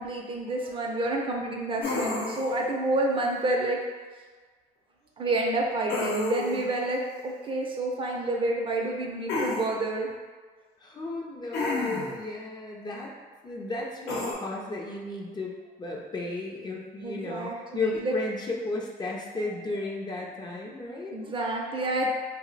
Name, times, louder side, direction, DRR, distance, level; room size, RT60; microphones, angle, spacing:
voice 1, 0.0-3.8 5.2-10.1 17.0-18.2 19.7-19.9 21.1-22.1, right 2 dB, 30° right, 0 dB, 0.4 m, -29 dB
sound 1, 1.8-2.6 5.9-6.7 9.3-9.7 11.5-12.2 14.1-14.3, left 2 dB, 80° left, 0.8 m, -30 dB
voice 2, 10.8-13.1 13.4-15.5 15.8-21.1, left 2 dB, 25° left, -2 dB, 0.4 m, -34 dB
2.4 x 2.0 x 3.8 m, 1.4 s
cardioid pair, 110°, 17 cm